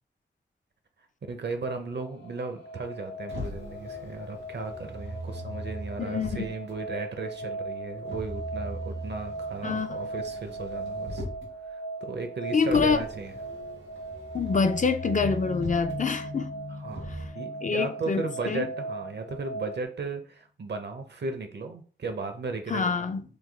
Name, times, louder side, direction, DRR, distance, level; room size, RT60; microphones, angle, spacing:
voice 1, 1.3-11.2 11.7-13.3 16.8-17.0 17.3-22.8, right 3 dB, 55° right, 0.6 m, -35 dB
sound 1, 1.8-19.8, right 2 dB, 60° left, 0.9 m, -39 dB
Motor vehicle (road), 3.3-6.7 8.0-11.5 12.7-15.9 16.9-17.3, right 1 dB, 80° right, 1.5 m, -39 dB
voice 2, 6.0-6.4 9.6-10.0 12.5-13.0 14.3-16.5 17.1-17.2 17.6-18.7 22.7-23.2, left 5 dB, 40° left, 0.4 m, -26 dB
sound 2, 15.2-18.9, left 2 dB, 90° left, 0.8 m, -40 dB
3.3 x 2.0 x 3.4 m
cardioid pair, 55°, 20 cm